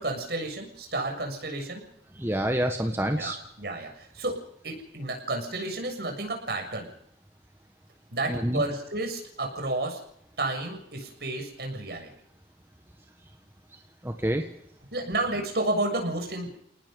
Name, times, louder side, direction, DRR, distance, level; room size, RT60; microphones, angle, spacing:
voice 1, 0.0-1.8 3.2-3.3 3.6-4.4 4.6-6.9 8.1-10.0 10.4-12.1 14.9-16.6, right 2 dB, 65° right, 2 dB, 7.1 m, -31 dB
voice 2, 2.2-3.4 8.3-8.6 14.0-14.5, right 1 dB, 15° right, 4 dB, 1.5 m, -27 dB
30.0 x 19.0 x 5.3 m, 0.73 s
head